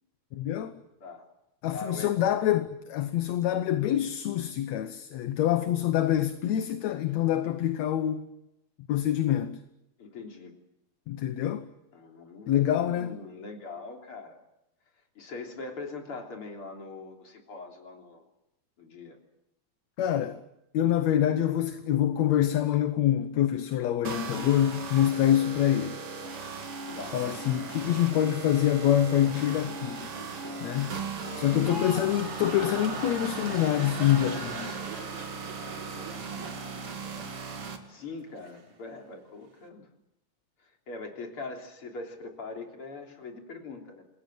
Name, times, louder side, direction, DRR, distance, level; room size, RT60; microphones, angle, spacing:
voice 1, 0.3-0.8 1.6-8.3 8.9-9.6 11.1-11.7 12.5-13.2 20.0-20.4 20.7-26.0 27.1-30.1 30.6-31.0 31.4-34.8, left 11 dB, 70° left, 2.2 m, -26 dB
voice 2, 1.7-2.1 10.0-10.6 11.9-14.4 15.2-18.2 18.8-19.2 26.9-27.2 31.3-32.0 35.3-39.9 40.9-44.0, left 3 dB, 45° left, 4.3 m, -42 dB
sound 1, 24.0-37.8, right 5 dB, 50° right, 3.1 m, -38 dB
sound 2, 26.4-34.8, equal, 10° right, 4.8 m, -48 dB
sound 3, 31.5-37.8 38.1-38.6, right 3 dB, 80° right, 5.1 m, -40 dB
27.5 x 21.0 x 7.7 m
omnidirectional pair, 3.3 m